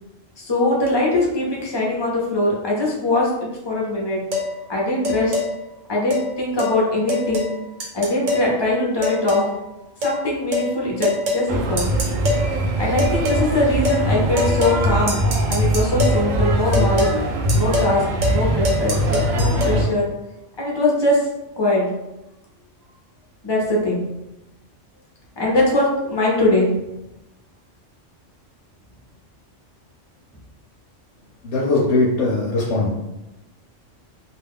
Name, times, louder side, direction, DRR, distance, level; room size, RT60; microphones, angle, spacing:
voice 1, 0.4-4.2 4.7-5.4 5.9-7.5 7.9-9.5 10.0-11.9 12.8-15.2 15.5-17.1 17.5-20.1 20.6-21.3 21.6-21.9 23.4-24.0 25.4-26.7, left 1 dB, 30° left, -4 dB, 0.5 m, -21 dB
sound 1, 4.3-4.5 5.0-5.5 6.1-6.2 6.6-6.7 7.1-7.5 7.8-8.5 9.0-9.5 10.0-10.2 10.5-10.7 11.0-11.4 11.8-12.4 13.0-13.4 13.8-14.0 14.4-14.8 15.1-16.2 16.7-17.1 17.5-17.9 18.2-18.4 18.6-19.7, left 3 dB, 85° right, 1.1 m, -24 dB
sound 2, 11.5-19.8, right 1 dB, 65° right, 0.4 m, -21 dB
voice 2, 31.4-33.0, left 2 dB, 70° left, -3 dB, 0.9 m, -20 dB
2.4 x 2.3 x 3.4 m, 0.96 s
omnidirectional pair, 1.3 m